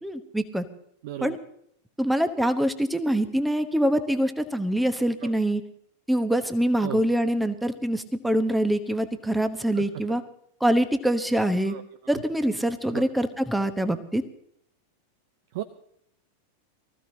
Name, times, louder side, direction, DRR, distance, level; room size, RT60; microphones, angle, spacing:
voice 1, 0.0-0.6 1.2-1.4 2.0-5.6 6.1-10.2 10.6-11.8 12.1-14.2, right 1 dB, 5° right, 10 dB, 1.0 m, -24 dB
voice 2, 1.0-1.4 5.2-5.3 6.8-7.0 9.7-9.8 11.7-11.8 12.9-13.0 15.5-15.6, right 13 dB, 50° right, 12 dB, 0.7 m, -34 dB
23.5 x 15.0 x 2.8 m, 0.72 s
figure-of-eight pair, 90°, 0 cm